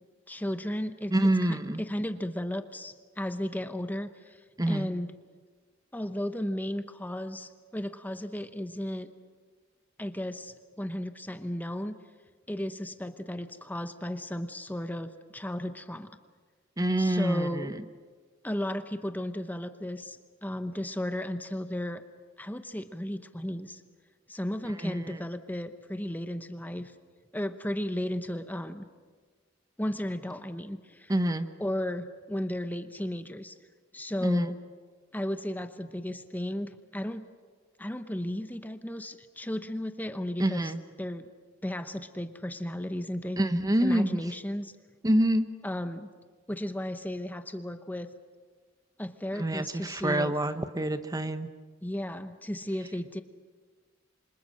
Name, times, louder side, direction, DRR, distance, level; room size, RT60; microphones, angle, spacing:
voice 1, 0.3-1.1 1.4-4.4 4.7-5.1 5.9-9.1 10.0-11.9 12.5-16.1 17.0-17.7 18.4-22.0 22.4-23.8 24.3-26.9 27.3-28.8 29.8-31.1 31.6-33.5 33.9-34.6 35.1-37.3 37.8-40.7 41.0-41.3 41.6-43.4 43.8-44.7 45.6-46.1 46.5-48.1 49.0-50.4 51.8-53.2, left 1 dB, 10° left, 9 dB, 0.9 m, -34 dB
voice 2, 1.1-1.8 4.6-4.9 16.8-17.7 24.8-25.2 31.1-31.5 34.2-34.5 40.4-40.8 43.4-44.2 45.0-45.5 49.4-51.5, right 1 dB, 20° right, 10 dB, 0.9 m, -26 dB
28.0 x 25.5 x 6.4 m, 1.5 s
head